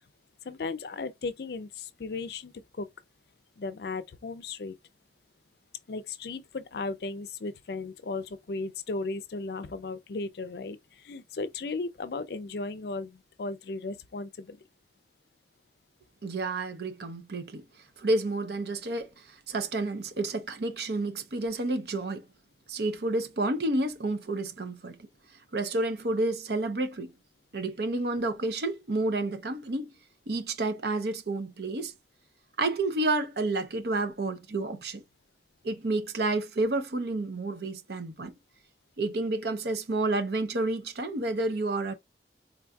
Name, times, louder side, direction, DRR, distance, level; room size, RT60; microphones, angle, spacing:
voice 1, 0.4-2.9 3.6-4.8 5.9-14.6, left 3 dB, 60° left, 0.4 m, -36 dB
voice 2, 16.2-17.6 18.0-22.2 22.7-25.1 25.5-27.1 27.5-29.9 30.3-31.9 32.6-35.0 35.6-38.4 39.0-41.9, right 2 dB, 65° right, 0.6 m, -30 dB
3.9 x 2.5 x 2.3 m
head